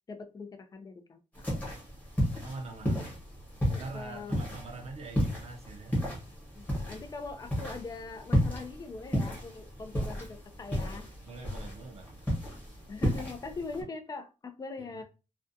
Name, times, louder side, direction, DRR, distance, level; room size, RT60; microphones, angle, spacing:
voice 1, 0.1-1.5 2.9-3.0 3.7-4.4 6.5-11.1 12.9-15.0, left 4 dB, 25° left, 0.4 m, -42 dB
sound 1, 1.4-13.8, equal, 10° left, 1.0 m, -33 dB
voice 2, 2.4-3.2 3.8-6.0 11.2-12.2 14.8-15.0, right 3 dB, 50° right, 0.5 m, -44 dB
2.4 x 2.2 x 2.6 m
wide cardioid pair, 170°, 14 cm